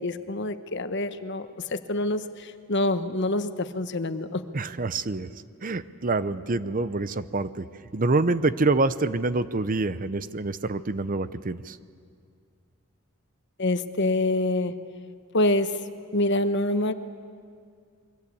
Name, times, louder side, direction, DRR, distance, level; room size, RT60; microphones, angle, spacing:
voice 1, 0.0-4.4 13.6-14.7 15.3-15.8 16.1-16.9, left 2 dB, 55° left, 10 dB, 1.2 m, -26 dB
voice 2, 4.5-7.7 7.9-11.8, right 3 dB, 40° right, 14 dB, 0.7 m, -26 dB
29.0 x 23.5 x 8.5 m, 2.2 s
head